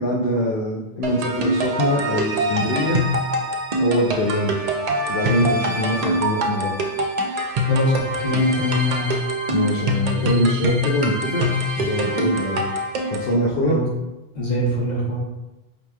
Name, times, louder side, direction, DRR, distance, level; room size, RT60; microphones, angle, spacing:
voice 1, 0.0-3.0 3.8-4.5 5.1-6.8 9.5-11.5 11.8-13.8, equal, 65° left, -3 dB, 0.7 m, -23 dB
sound 1, 1.0-13.3, equal, 55° right, 0.5 m, -24 dB
voice 2, 7.7-9.0 13.6-13.8 14.4-15.2, left 1 dB, 45° left, -4 dB, 1.1 m, -23 dB
5.0 x 3.0 x 2.3 m, 1.0 s
omnidirectional pair, 1.1 m